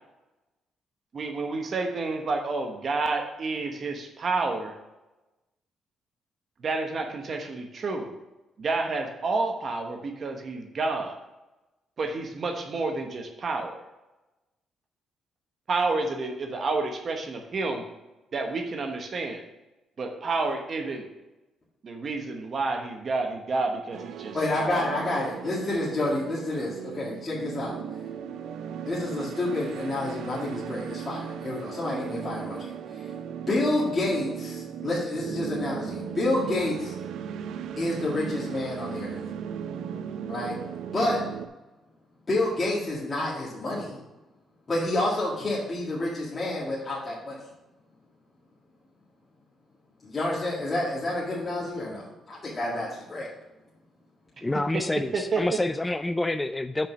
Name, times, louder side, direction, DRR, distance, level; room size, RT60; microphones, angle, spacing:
voice 1, 1.1-4.7 6.6-8.1 8.6-11.2 12.0-13.8 15.7-17.8 18.3-19.4 20.0-21.1 21.8-24.7 55.1-55.4, right 3 dB, 45° right, 3 dB, 1.0 m, -29 dB
sound 1, 23.9-41.5, right 8 dB, 75° right, 0.4 m, -37 dB
voice 2, 24.3-27.8 28.9-32.7 33.5-36.9 37.8-39.2 40.3-40.6 40.9-41.2 42.3-44.0 44.7-47.3 50.0-53.3, left 2 dB, 35° left, -6 dB, 1.9 m, -29 dB
voice 3, 54.4-56.9, left 2 dB, 15° left, 11 dB, 0.3 m, -27 dB
5.8 x 5.1 x 6.1 m, 1.0 s
cardioid pair, 90°, 0 cm